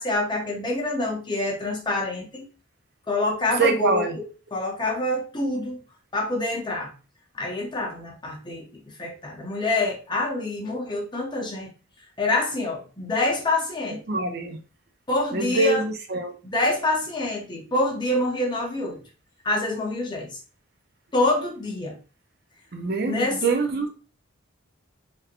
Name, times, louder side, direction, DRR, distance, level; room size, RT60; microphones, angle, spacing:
voice 1, 0.0-2.5 3.1-4.3 4.5-5.8 6.1-6.9 7.3-8.7 9.0-11.7 12.2-14.2 15.1-15.8 16.4-19.0 19.4-20.4 21.1-22.0 23.0-23.5, left 2 dB, 20° left, 0.7 m, -26 dB
voice 2, 3.6-4.1 14.1-14.6 15.3-16.3 22.7-23.9, right 3 dB, 45° right, 0.5 m, -24 dB
3.3 x 3.1 x 2.4 m
head